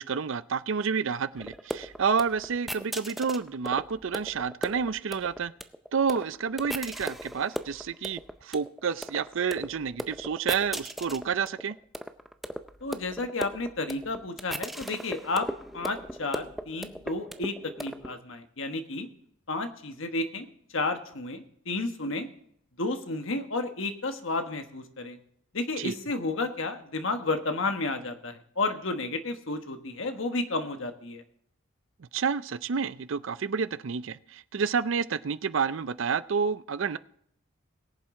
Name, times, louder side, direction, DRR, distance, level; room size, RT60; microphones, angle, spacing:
voice 1, 0.0-5.5 5.9-11.8 25.8-25.9 32.1-37.0, right 6 dB, 60° right, 15 dB, 0.5 m, -29 dB
sound 1, 1.4-18.2, equal, ahead, 0.5 m, -37 dB
voice 2, 12.8-15.5 15.7-19.1 19.5-20.5 20.7-22.3 22.8-25.2 25.5-31.2, left 2 dB, 60° left, 6 dB, 1.3 m, -32 dB
21.5 x 7.4 x 3.7 m, 0.69 s
head